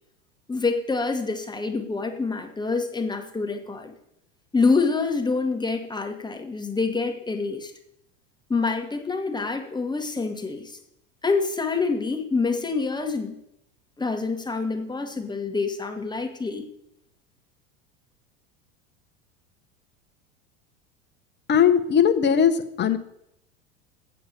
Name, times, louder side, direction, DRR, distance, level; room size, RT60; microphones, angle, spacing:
voice 1, 0.5-3.9 4.5-7.7 8.5-10.8 11.2-13.4 14.0-16.6, left 4 dB, 10° left, 5 dB, 1.4 m, -26 dB
voice 2, 21.5-23.0, left 8 dB, 25° left, 9 dB, 1.1 m, -19 dB
8.4 x 7.6 x 7.0 m, 0.78 s
figure-of-eight pair, 85°, 39 cm